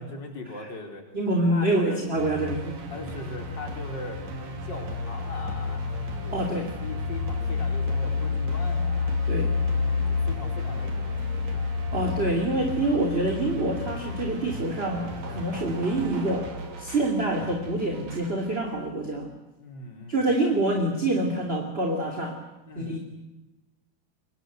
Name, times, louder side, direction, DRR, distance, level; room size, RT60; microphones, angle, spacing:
voice 1, 0.0-1.0 1.5-2.0 2.9-4.2 4.6-9.2 9.8-11.7 19.6-20.7 22.6-23.0, left 2 dB, 30° left, 3 dB, 4.7 m, -41 dB
voice 2, 1.1-2.7 6.3-6.7 9.3-9.5 11.9-16.5 16.8-19.3 20.1-22.4 22.8-23.0, right 2 dB, 20° right, 2 dB, 2.5 m, -26 dB
sound 1, 2.1-18.6, right 1 dB, 60° right, 4.6 m, -39 dB
sound 2, 2.9-18.3, left 4 dB, 55° left, 2.2 m, -31 dB
28.0 x 24.0 x 8.1 m, 0.99 s
omnidirectional pair, 4.3 m